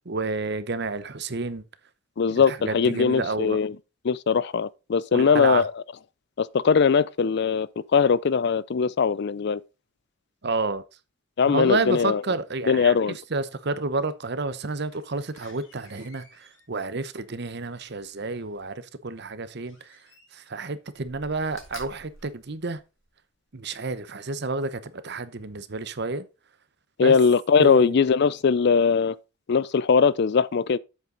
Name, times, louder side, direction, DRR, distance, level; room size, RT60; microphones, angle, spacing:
voice 1, 0.1-1.6 2.3-3.6 5.1-5.6 10.4-10.8 11.5-12.9 13.3-20.0 20.3-22.8 23.5-26.2 27.0-27.1 27.6-28.0, right 3 dB, 55° right, 0.9 m, -30 dB
voice 2, 2.2-3.7 4.0-5.7 6.4-9.6 11.4-12.2 12.7-13.2 27.0-29.2 29.5-30.8, left 5 dB, 55° left, 0.4 m, -21 dB
Slam, 14.6-18.5 19.6-20.5 20.9-23.2 23.7-23.8, left 2 dB, 75° left, 4.4 m, -51 dB
8.2 x 7.5 x 3.9 m
head